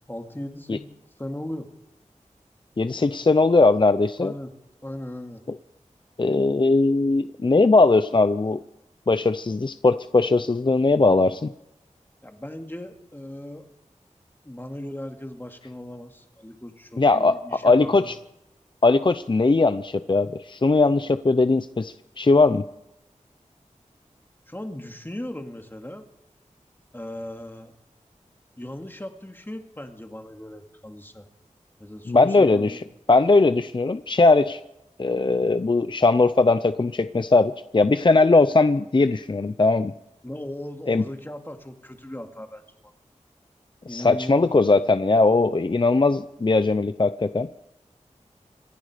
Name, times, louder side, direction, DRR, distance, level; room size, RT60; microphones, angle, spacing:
voice 1, 0.1-0.9 1.2-1.7 4.2-4.5 4.8-5.4 12.2-13.6 14.4-18.1 24.5-26.0 26.9-27.7 28.6-31.3 31.8-32.8 40.2-42.9 43.9-44.5 44.8-44.9, left 1 dB, 15° left, 4 dB, 2.3 m, -37 dB
voice 2, 2.8-4.3 6.2-8.6 9.1-11.5 17.0-18.1 18.8-22.6 32.1-32.8 33.1-34.6 35.0-39.9 40.9-41.0 43.9-47.5, left 3 dB, 40° left, 12 dB, 0.6 m, -19 dB
27.0 x 10.5 x 5.0 m, 0.91 s
wide cardioid pair, 60°, 13 cm